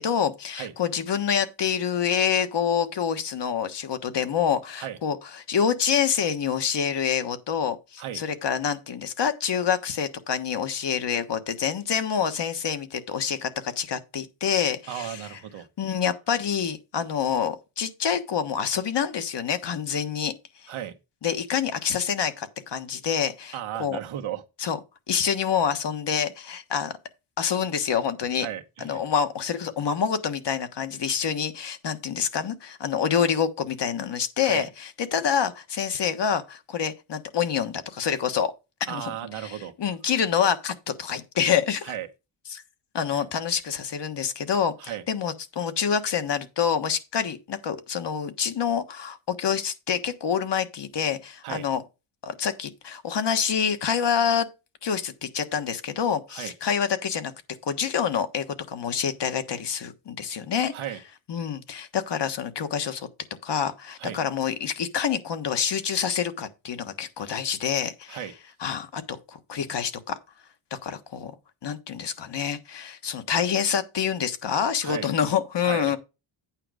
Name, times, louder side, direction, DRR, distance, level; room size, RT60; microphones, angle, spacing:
voice 1, 0.0-15.4 15.8-20.3 20.6-20.7 21.2-24.0 24.6-24.8 25.1-26.9 27.4-28.5 28.8-38.5 38.9-39.1 39.4-41.9 42.5-42.6 42.9-51.8 52.2-54.5 54.8-57.3 57.6-60.7 61.3-63.1 63.4-68.3 68.6-70.1 70.7-71.3 71.6-76.0, left 7 dB, 60° left, 1.4 m, -27 dB
voice 2, 14.9-15.7 20.7-21.0 23.5-24.4 28.4-29.0 34.4-34.7 38.9-39.7 41.8-42.1 43.1-43.2 44.8-45.0 51.4-51.6 56.3-56.5 60.7-61.0 64.0-64.2 68.1-68.3 74.8-75.1 75.6-75.9, right 11 dB, 80° right, 1.3 m, -35 dB
9.0 x 5.0 x 5.0 m
cardioid pair, 90°, 48 cm